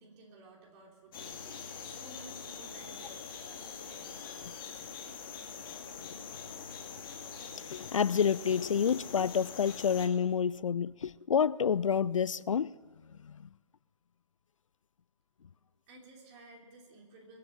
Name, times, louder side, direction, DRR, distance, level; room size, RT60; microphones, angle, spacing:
voice 1, 0.0-5.2 15.9-17.4, right 2 dB, 25° right, 3.0 m, -55 dB
sound 1, 1.1-10.1, left 6 dB, 40° left, 2.3 m, -44 dB
voice 2, 7.7-12.7, left 7 dB, 70° left, 0.4 m, -28 dB
22.0 x 7.8 x 6.6 m
figure-of-eight pair, 140°, 17 cm